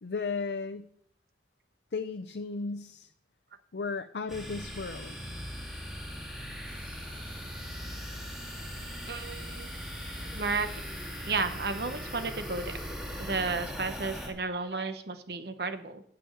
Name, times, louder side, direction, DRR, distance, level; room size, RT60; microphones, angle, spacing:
voice 1, 0.0-0.9 1.9-3.1 3.7-5.2, left 4 dB, 70° left, 8 dB, 0.5 m, -35 dB
sound 1, 4.3-14.3, equal, 5° right, 2.0 m, -39 dB
sound 2, 6.6-12.9, right 1 dB, 30° right, 4.7 m, -53 dB
voice 2, 9.1-9.7 10.3-10.7 11.3-12.8 13.2-16.0, right 4 dB, 65° right, 9 dB, 0.9 m, -33 dB
9.3 x 6.1 x 8.0 m, 0.69 s
head